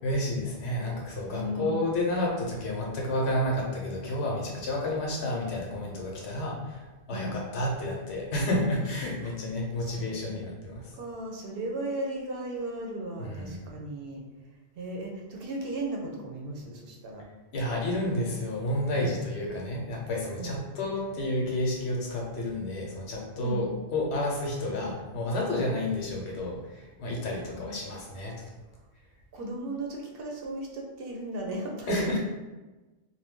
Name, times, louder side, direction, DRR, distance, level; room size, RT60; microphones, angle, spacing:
voice 1, 0.0-10.9 13.2-13.7 17.5-28.4 31.9-32.2, left 1 dB, 85° left, -1 dB, 1.0 m, -30 dB
voice 2, 1.3-1.8 7.1-7.4 9.2-9.3 9.8-10.4 10.9-14.2 14.8-17.2 18.9-19.1 20.4-20.6 23.4-23.6 27.4-27.8 29.3-32.2, right 1 dB, 65° right, 0 dB, 0.8 m, -36 dB
2.6 x 2.2 x 3.6 m, 1.2 s
omnidirectional pair, 1.1 m